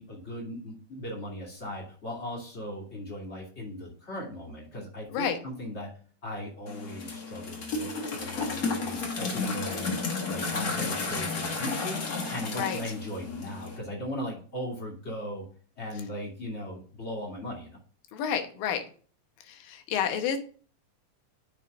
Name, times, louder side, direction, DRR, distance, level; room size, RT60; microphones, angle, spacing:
voice 1, 0.0-5.9 6.2-10.0 10.3-12.0 12.3-15.5 15.8-17.8, left 1 dB, 20° left, -2 dB, 2.5 m, -38 dB
sound 1, 6.7-13.8, left 3 dB, 55° left, 1.0 m, -32 dB
voice 2, 18.1-18.8 19.5-20.4, left 8 dB, 90° left, 6 dB, 2.8 m, -29 dB
9.7 x 6.6 x 2.5 m, 0.41 s
omnidirectional pair, 3.9 m